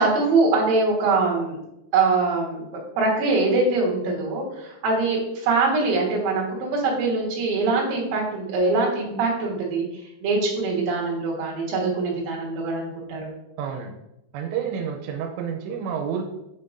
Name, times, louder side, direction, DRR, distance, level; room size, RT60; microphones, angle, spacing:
voice 1, 0.0-1.6 1.9-2.7 3.0-9.9 10.2-13.3, right 3 dB, 65° right, -2 dB, 2.8 m, -23 dB
voice 2, 13.6-14.0 14.3-16.2, right 7 dB, 90° right, 2 dB, 2.8 m, -29 dB
6.9 x 5.7 x 2.5 m, 0.88 s
omnidirectional pair, 5.0 m